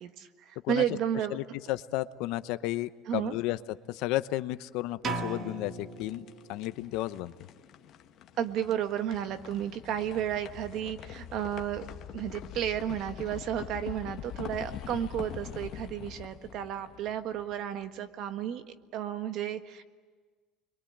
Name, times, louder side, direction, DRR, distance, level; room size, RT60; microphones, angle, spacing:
voice 1, 0.0-1.4 3.1-3.3 8.4-11.9 12.1-18.6 18.9-19.8, right 10 dB, 55° right, 9 dB, 1.6 m, -32 dB
voice 2, 1.3-3.6 3.9-7.3, left 16 dB, 70° left, 12 dB, 0.9 m, -33 dB
sound 1, 5.0-6.9, right 3 dB, 40° right, 1.8 m, -37 dB
sound 2, 5.7-17.8, left 10 dB, 50° left, 1.4 m, -44 dB
30.0 x 23.0 x 8.8 m, 1.4 s
cardioid pair, 130°, 0 cm